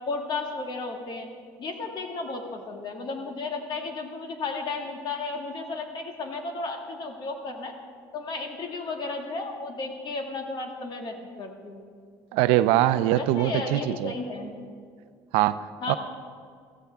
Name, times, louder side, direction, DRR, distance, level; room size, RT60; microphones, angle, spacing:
voice 1, 0.1-1.3 1.6-7.8 8.1-11.8 13.1-14.5 15.8-16.0, left 3 dB, 50° left, 3 dB, 2.0 m, -33 dB
voice 2, 12.3-14.1 15.3-15.9, right 14 dB, 80° right, 14 dB, 0.5 m, -23 dB
15.5 x 14.5 x 3.5 m, 2.2 s
supercardioid pair, 105°, 10 cm